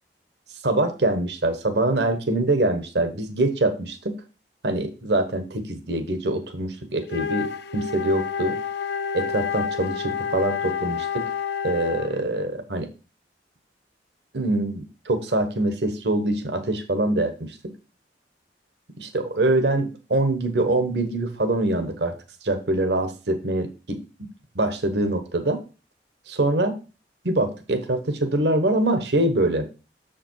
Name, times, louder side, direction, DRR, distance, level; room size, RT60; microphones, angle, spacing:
voice 1, 0.6-4.1 4.6-8.5 9.1-11.2 11.6-12.9 14.3-17.6 19.0-22.1 22.4-24.0 24.5-25.6 26.3-26.7 27.2-29.7, right 2 dB, 75° right, 7 dB, 1.1 m, -24 dB
Wind instrument woodwind instrument, 7.0-12.3, left 6 dB, 65° left, 0.5 m, -29 dB
7.0 x 5.0 x 4.6 m, 0.32 s
head